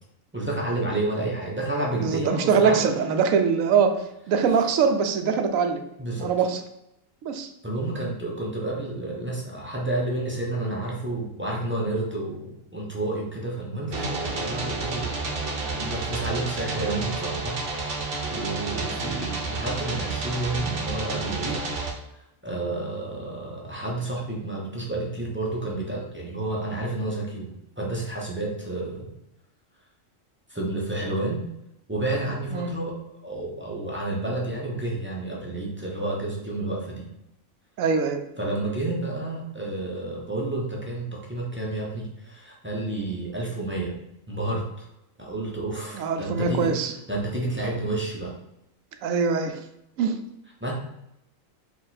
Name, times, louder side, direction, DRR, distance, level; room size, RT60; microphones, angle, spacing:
voice 1, 0.3-2.8 6.0-6.3 7.6-15.2 15.7-21.7 22.4-29.1 30.5-31.4 31.9-37.1 38.4-44.0 44.3-44.9 45.2-46.7 47.1-48.4 50.6-50.7, right 2 dB, 15° right, -3 dB, 0.5 m, -30 dB
voice 2, 2.0-5.8 6.2-6.6 7.2-7.5 32.5-32.7 37.8-38.2 45.9-46.9 49.0-49.6 50.0-50.2, right 6 dB, 75° right, 6 dB, 1.0 m, -23 dB
sound 1, 13.9-21.9, right 3 dB, 50° right, 0.9 m, -30 dB
4.6 x 2.4 x 4.0 m, 0.82 s
omnidirectional pair, 1.4 m